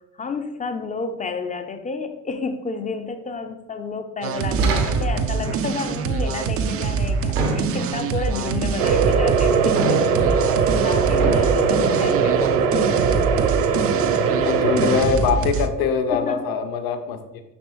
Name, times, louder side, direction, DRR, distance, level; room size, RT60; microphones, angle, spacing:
voice 1, 0.2-9.8 10.2-10.5 10.8-12.6 16.1-16.5, left 4 dB, 15° left, 8 dB, 0.6 m, -31 dB
sound 1, 4.2-15.7, right 5 dB, 30° right, 0.5 m, -25 dB
sound 2, 4.6-5.4 7.4-8.1 9.8-10.4 11.2-11.6, right 3 dB, 75° right, 1.1 m, -25 dB
sound 3, 8.8-15.0, right 5 dB, 50° right, 0.9 m, -20 dB
voice 2, 11.8-12.2 12.7-12.9 14.4-17.4, left 6 dB, 50° left, 7 dB, 1.0 m, -23 dB
7.1 x 6.0 x 3.2 m, 0.93 s
figure-of-eight pair, 55°, 47 cm